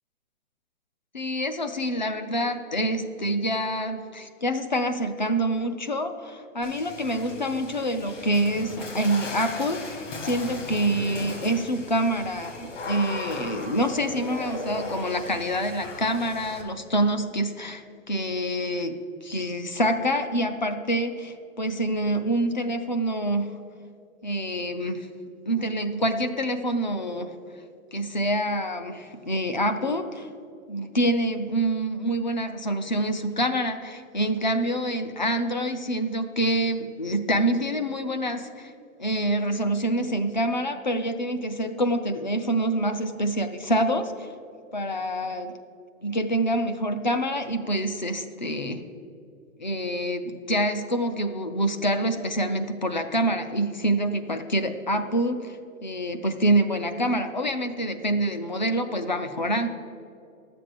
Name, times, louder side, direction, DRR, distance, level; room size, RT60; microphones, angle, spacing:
voice 1, 1.1-23.5 24.2-25.1 25.5-27.4 27.9-30.3 30.7-38.7 39.0-44.3 44.7-45.6 46.0-48.8 49.6-59.7, right 1 dB, 35° left, 9 dB, 0.4 m, -26 dB
Water / Splash splatter, 6.6-16.6, left 2 dB, 55° left, 1.9 m, -37 dB
11.5 x 7.6 x 6.5 m, 2.5 s
hypercardioid pair, 170°, 43 cm